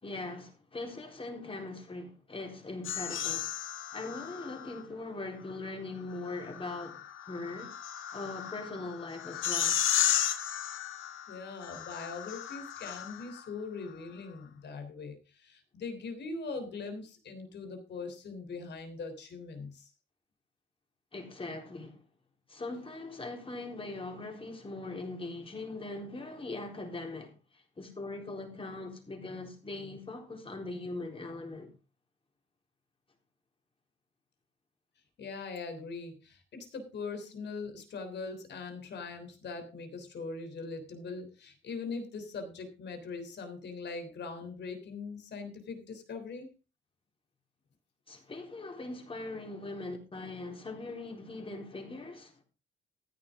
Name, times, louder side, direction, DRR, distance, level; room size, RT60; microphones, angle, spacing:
voice 1, 0.0-3.5 3.9-7.7 8.1-9.8 21.1-22.0 22.5-31.7 48.1-52.4, left 2 dB, 25° left, 3.9 m, -41 dB
sound 1, 2.8-4.8 6.3-13.4, left 10 dB, 80° left, 1.7 m, -34 dB
voice 2, 11.3-19.9 35.2-46.5, left 4 dB, 60° left, 3.3 m, -41 dB
14.5 x 10.0 x 3.6 m
cardioid pair, 90°, 20 cm